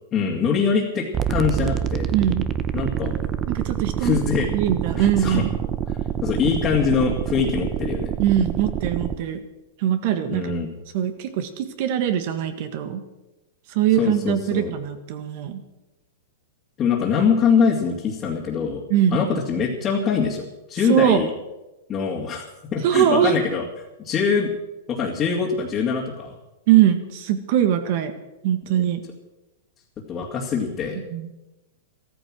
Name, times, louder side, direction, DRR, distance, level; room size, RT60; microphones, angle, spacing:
voice 1, 0.1-2.1 2.7-3.2 4.0-4.5 5.0-5.4 6.2-8.1 10.3-10.7 14.0-14.7 16.8-18.8 19.1-21.3 21.9-23.6 24.0-24.5 24.9-26.3 30.1-31.0, left 6 dB, 25° left, -4 dB, 2.5 m, -23 dB
sound 1, 1.1-9.2, right 9 dB, 25° right, 0.9 m, -26 dB
voice 2, 2.1-2.4 3.5-4.2 4.5-5.5 8.2-9.4 9.8-10.4 10.9-13.0 13.7-15.6 18.9-19.2 20.9-21.2 22.8-23.3 26.7-28.1 28.4-29.0 31.1-31.3, right 10 dB, 55° right, 9 dB, 1.7 m, -21 dB
14.0 x 13.5 x 6.4 m, 1.0 s
hypercardioid pair, 135°, 0 cm